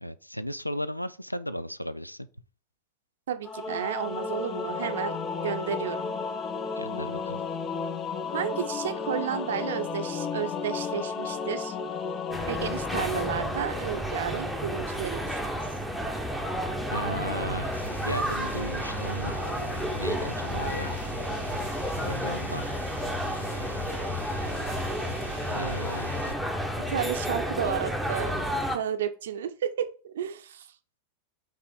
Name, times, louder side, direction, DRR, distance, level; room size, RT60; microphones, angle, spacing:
voice 1, 0.0-2.3 6.8-7.4 16.9-17.8 18.1-19.5 20.0-20.9 22.0-22.7 25.5-26.3, equal, 90° left, 0.4 m, -35 dB
voice 2, 3.3-5.2 5.4-6.1 8.3-11.7 12.5-15.8 26.9-30.7, right 9 dB, 60° right, 0.7 m, -32 dB
Singing / Musical instrument, 3.4-14.7, left 5 dB, 30° left, 0.6 m, -33 dB
sound 1, 12.3-28.8, equal, ahead, 1.0 m, -31 dB
sound 2, 17.7-26.4, equal, 90° right, 0.4 m, -42 dB
5.6 x 3.4 x 5.1 m
figure-of-eight pair, 90°, 0 cm